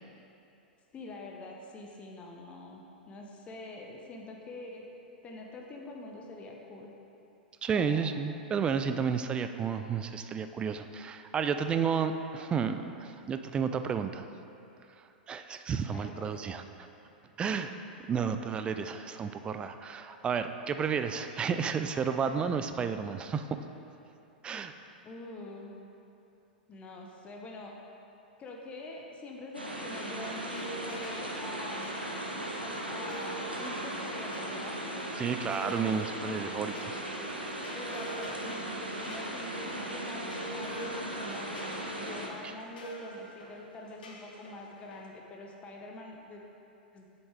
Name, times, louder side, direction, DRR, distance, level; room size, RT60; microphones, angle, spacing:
voice 1, 0.9-4.8 5.2-6.9 7.7-8.1 15.9-16.3 25.0-25.8 26.7-27.7 28.4-32.0 32.6-34.8 37.7-46.4 46.9-47.1, left 2 dB, 25° left, 0 dB, 0.8 m, -45 dB
voice 2, 7.6-14.3 15.3-16.6 17.4-17.7 18.1-23.4 24.4-24.7 35.2-37.0, right 6 dB, 20° right, 9 dB, 0.3 m, -31 dB
sound 1, 29.5-42.3, right 1 dB, 85° right, 0.9 m, -37 dB
sound 2, 29.8-45.1, equal, 60° left, 0.9 m, -47 dB
7.9 x 7.0 x 3.4 m, 2.8 s
figure-of-eight pair, 95°, 5 cm